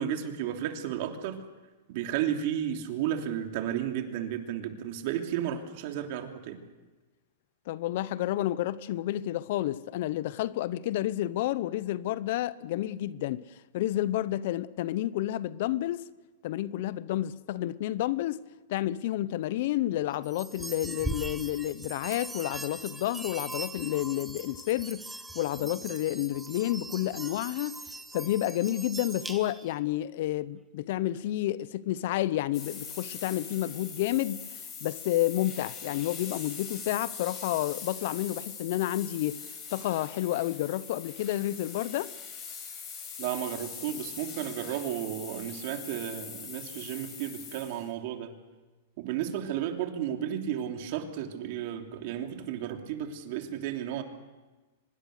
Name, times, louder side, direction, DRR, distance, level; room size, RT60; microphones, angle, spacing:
voice 1, 0.0-1.4 1.9-6.6 43.2-48.3 49.0-54.0, right 10 dB, 55° right, 3.0 m, -33 dB
voice 2, 7.7-13.4 13.7-16.0 16.4-18.4 18.7-25.1 25.3-27.7 28.1-34.4 34.8-42.1, left 14 dB, 60° left, 0.8 m, -30 dB
sound 1, 20.2-29.8, right 2 dB, 5° right, 1.6 m, -41 dB
sound 2, 32.5-47.8, left 6 dB, 30° left, 6.4 m, -42 dB
24.5 x 21.0 x 6.6 m
hypercardioid pair, 135°, 0 cm